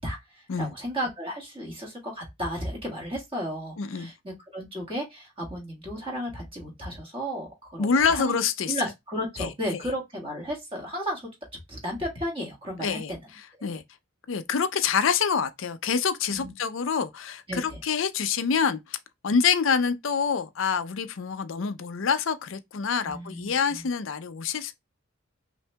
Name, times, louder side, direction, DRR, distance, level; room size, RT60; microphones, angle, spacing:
voice 1, 0.0-8.4 8.7-11.3 11.7-13.2 16.3-16.5 17.5-17.8 23.0-23.9, equal, 25° right, 1.6 m, -34 dB
voice 2, 3.8-4.1 7.8-8.7 9.4-9.5 12.8-13.1 13.6-13.8 14.3-19.0 19.2-24.7, left 6 dB, 70° left, 0.5 m, -26 dB
5.5 x 2.6 x 2.2 m
head